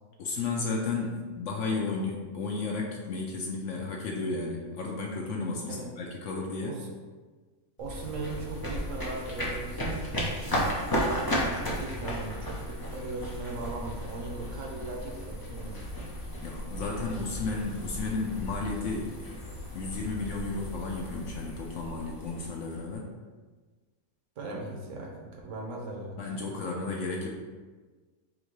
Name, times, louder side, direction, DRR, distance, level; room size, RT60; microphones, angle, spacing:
voice 1, 0.2-6.7 16.4-19.4 19.7-23.1 26.2-27.3, left 3 dB, 65° left, -1 dB, 0.8 m, -33 dB
sound 1, 7.8-22.9, equal, 30° left, 0.4 m, -35 dB
voice 2, 7.8-10.1 11.2-15.8 24.4-26.3, right 2 dB, 65° right, -1 dB, 1.0 m, -38 dB
3.7 x 2.7 x 4.5 m, 1.4 s
omnidirectional pair, 1.6 m